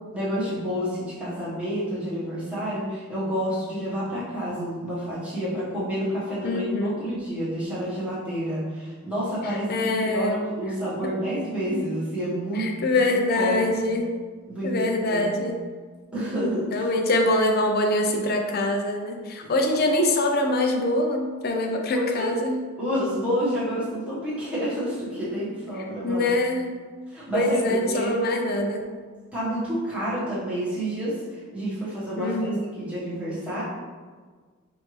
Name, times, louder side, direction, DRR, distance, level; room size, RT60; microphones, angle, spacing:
voice 1, 0.1-13.1 13.4-13.7 14.5-15.3 16.1-16.9 19.4-19.5 21.9-22.4 22.8-26.3 27.1-28.1 29.3-32.5 32.8-33.6, equal, 5° right, -11 dB, 1.3 m, -29 dB
voice 2, 6.4-7.0 9.5-10.4 11.0-11.1 12.5-14.1 14.6-15.5 16.7-22.6 26.0-26.6 27.3-28.8 32.2-32.6, left 1 dB, 50° left, 3 dB, 0.5 m, -24 dB
5.3 x 2.6 x 3.2 m, 1.5 s
head